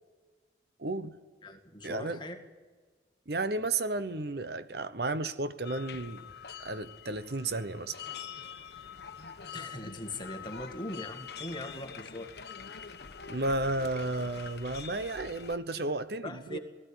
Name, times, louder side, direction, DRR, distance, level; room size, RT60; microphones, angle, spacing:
voice 1, 0.8-1.2 1.8-2.2 3.3-6.2 6.6-8.0 13.3-16.6, right 2 dB, 60° right, 0.9 m, -33 dB
voice 2, 1.4-2.4 9.5-12.3 16.2-16.6, left 1 dB, 25° left, 1.9 m, -40 dB
sound 1, 5.6-15.6, left 6 dB, 65° left, 1.1 m, -45 dB
19.5 x 15.0 x 9.8 m
head